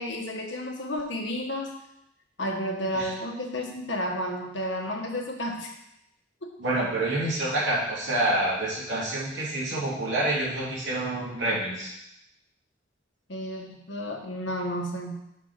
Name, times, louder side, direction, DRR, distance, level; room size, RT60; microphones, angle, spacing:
voice 1, 0.0-1.7 2.4-5.7 6.4-6.6 13.3-15.2, equal, 75° left, 1 dB, 1.3 m, -32 dB
voice 2, 6.6-11.9, right 1 dB, 75° right, -5 dB, 2.9 m, -27 dB
6.0 x 5.8 x 6.5 m, 0.84 s
head